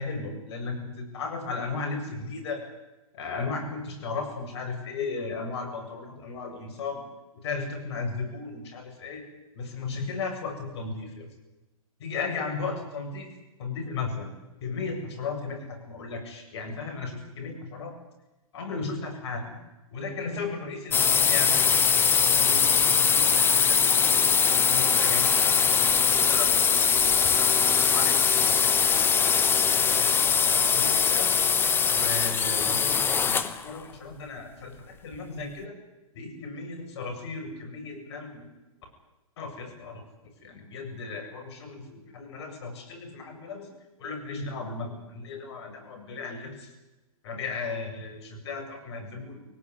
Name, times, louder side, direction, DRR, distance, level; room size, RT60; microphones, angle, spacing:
voice 1, 0.0-2.6 3.1-7.0 7.4-9.3 9.5-11.3 12.0-13.3 13.6-14.3 14.6-17.9 18.5-19.6 19.9-24.3 24.7-29.3 29.7-30.1 30.4-31.4 31.9-35.8 36.1-38.4 39.4-40.0 40.4-43.7 44.0-46.7 47.2-49.4, left 4 dB, 50° left, 4 dB, 7.7 m, -36 dB
sound 1, 20.9-33.6, left 6 dB, 10° left, 1.1 m, -22 dB
22.5 x 18.5 x 9.9 m, 1.0 s
hypercardioid pair, 140°, 18 cm